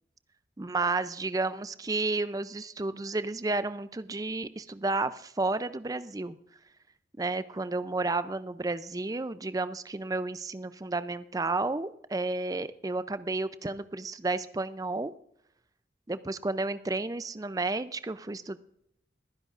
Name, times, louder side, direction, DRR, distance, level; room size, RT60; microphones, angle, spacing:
voice 1, 0.6-6.4 7.2-15.1 16.1-18.6, right 3 dB, 20° right, 14 dB, 0.5 m, -32 dB
22.0 x 10.5 x 2.5 m, 0.73 s
head